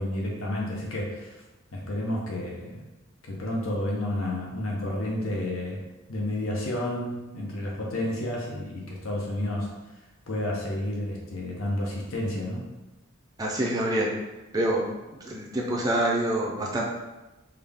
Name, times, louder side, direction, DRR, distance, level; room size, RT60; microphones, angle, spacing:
voice 1, 0.0-1.4 1.7-2.8 3.2-5.8 6.1-9.7 10.3-12.6, left 1 dB, 70° left, -2 dB, 0.8 m, -30 dB
voice 2, 13.4-14.1 14.5-14.9 15.3-16.8, right 1 dB, 20° right, -2 dB, 0.4 m, -26 dB
3.6 x 2.3 x 3.4 m, 1.1 s
head